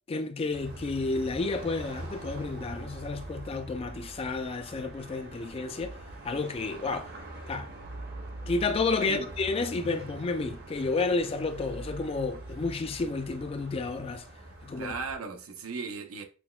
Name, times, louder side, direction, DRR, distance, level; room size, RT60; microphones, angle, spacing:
voice 1, 0.1-6.0 6.2-7.1 7.5-7.7 8.5-14.2 14.6-14.9, left 3 dB, 25° left, 0.3 m, -31 dB
sound 1, 0.5-15.1, right 1 dB, 50° right, 0.8 m, -43 dB
voice 2, 14.8-16.2, right 4 dB, 90° right, 0.7 m, -36 dB
5.8 x 2.2 x 2.3 m
head